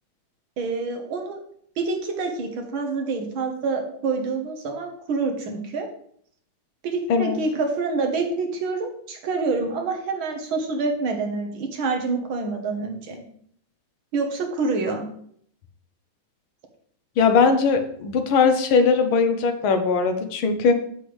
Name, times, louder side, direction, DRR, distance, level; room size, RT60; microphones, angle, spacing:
voice 1, 0.6-1.4 1.8-5.9 6.8-13.2 14.1-15.1, right 4 dB, 85° right, 3 dB, 2.1 m, -27 dB
voice 2, 17.2-20.7, left 5 dB, 85° left, 7 dB, 1.8 m, -20 dB
8.0 x 7.6 x 3.3 m, 0.64 s
omnidirectional pair, 2.2 m